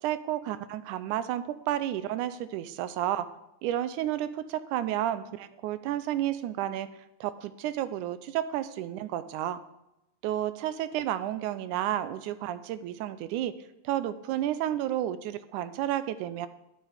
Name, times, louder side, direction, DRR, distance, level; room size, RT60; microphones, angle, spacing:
voice 1, 0.0-3.3 3.6-6.9 7.2-9.6 10.2-13.5 13.8-16.5, right 12 dB, 85° right, 13 dB, 2.1 m, -31 dB
11.5 x 8.1 x 4.9 m, 0.91 s
omnidirectional pair, 3.5 m